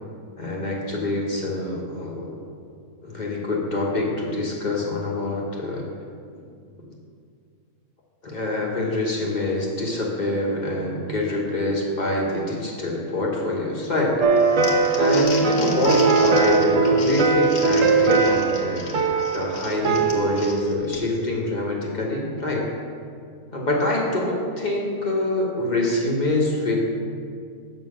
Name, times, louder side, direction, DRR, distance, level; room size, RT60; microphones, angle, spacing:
voice 1, 0.4-2.4 3.0-5.9 8.2-14.2 14.9-22.7 23.5-26.7, left 2 dB, 35° left, -2 dB, 1.3 m, -25 dB
sound 1, 14.2-20.7, right 4 dB, 75° right, 1.2 m, -20 dB
Crumpling crinkling, 14.4-21.3, left 3 dB, 55° left, 1.3 m, -36 dB
7.4 x 6.0 x 6.4 m, 2.3 s
omnidirectional pair, 1.4 m